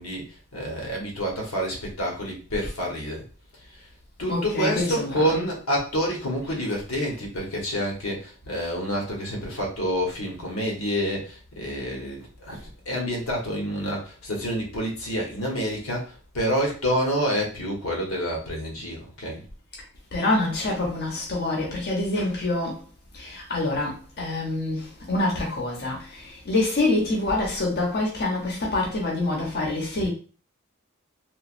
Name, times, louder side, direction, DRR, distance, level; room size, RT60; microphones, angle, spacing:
voice 1, 0.0-3.2 3.7-3.9 4.2-19.4, equal, 85° left, 1.0 m, -28 dB
voice 2, 4.3-5.5 20.1-22.8 23.1-30.1, left 2 dB, 50° left, 0.8 m, -26 dB
3.0 x 2.3 x 2.5 m
head